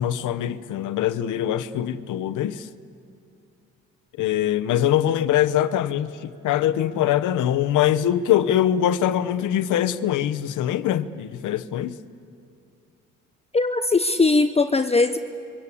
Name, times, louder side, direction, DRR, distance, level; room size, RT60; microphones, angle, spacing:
voice 1, 0.0-2.7 4.2-12.0, left 11 dB, 80° left, 1.0 m, -23 dB
voice 2, 13.5-15.2, left 3 dB, 20° left, 0.8 m, -20 dB
29.0 x 24.0 x 8.5 m
cardioid pair, 90°, 30 cm